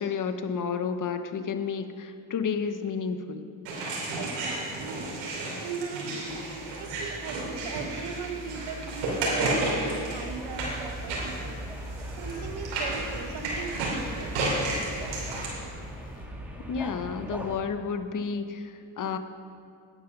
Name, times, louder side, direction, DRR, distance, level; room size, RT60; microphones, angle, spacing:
voice 1, 0.0-3.4 16.7-19.2, left 6 dB, 45° left, 9 dB, 0.9 m, -31 dB
sound 1, 3.6-15.5, right 2 dB, 90° right, 2.9 m, -32 dB
voice 2, 4.2-5.1 5.6-6.4 6.8-9.7 10.1-11.6 12.2-14.5, right 6 dB, 60° right, 6 dB, 1.2 m, -38 dB
sound 2, 6.3-16.3, equal, 20° left, 2.3 m, -43 dB
sound 3, 10.2-17.6, equal, 5° right, 1.7 m, -40 dB
10.0 x 8.1 x 6.0 m, 2.4 s
supercardioid pair, 70°, 44 cm